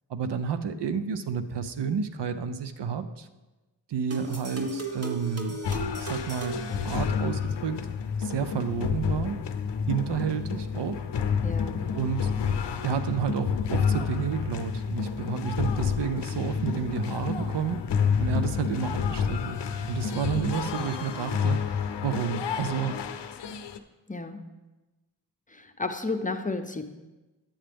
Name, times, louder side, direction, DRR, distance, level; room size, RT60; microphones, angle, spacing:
voice 1, 0.1-3.3 3.9-5.6 6.0-7.8 8.2-9.4 9.9-11.1 11.9-12.4 12.8-19.6 19.9-23.0, right 7 dB, 75° right, 10 dB, 0.7 m, -30 dB
sound 1, 4.1-7.6, right 1 dB, 35° right, 1.3 m, -36 dB
sound 2, 5.6-23.8, left 6 dB, 80° left, 0.7 m, -29 dB
voice 2, 11.4-11.8 24.1-24.4 25.5-26.8, left 3 dB, 20° left, 5 dB, 0.7 m, -32 dB
10.0 x 8.6 x 3.4 m, 1.1 s
wide cardioid pair, 75°, 42 cm